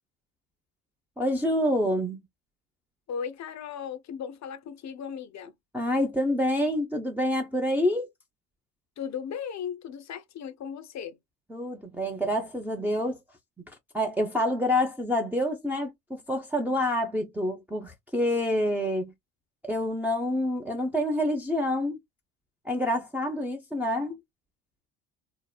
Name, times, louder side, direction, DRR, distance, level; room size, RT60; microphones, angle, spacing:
voice 1, 1.2-2.2 5.7-8.1 11.5-13.2 13.9-19.1 19.6-22.0 22.7-24.2, left 1 dB, 5° right, 0.7 m, -27 dB
voice 2, 3.1-5.5 9.0-11.2, left 7 dB, 45° left, 0.7 m, -36 dB
2.9 x 2.1 x 2.2 m
hypercardioid pair, 60°, 39 cm